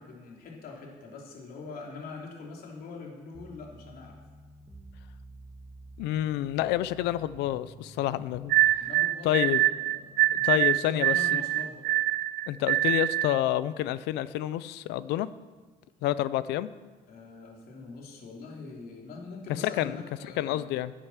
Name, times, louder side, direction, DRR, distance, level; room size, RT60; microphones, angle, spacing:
voice 1, 0.0-4.2 8.8-11.9 17.1-20.7, left 3 dB, 60° left, -1 dB, 3.3 m, -43 dB
sound 1, 3.3-8.7, right 2 dB, 10° right, 1.6 m, -50 dB
voice 2, 6.0-8.8 9.2-9.6 10.3-11.4 12.5-15.3 16.0-16.7 19.8-20.0 20.4-20.9, left 13 dB, 90° left, 16 dB, 0.6 m, -28 dB
sound 2, 8.5-13.4, right 15 dB, 75° right, 0.4 m, -25 dB
10.5 x 10.0 x 7.4 m, 1.3 s
cardioid pair, 110°, 17 cm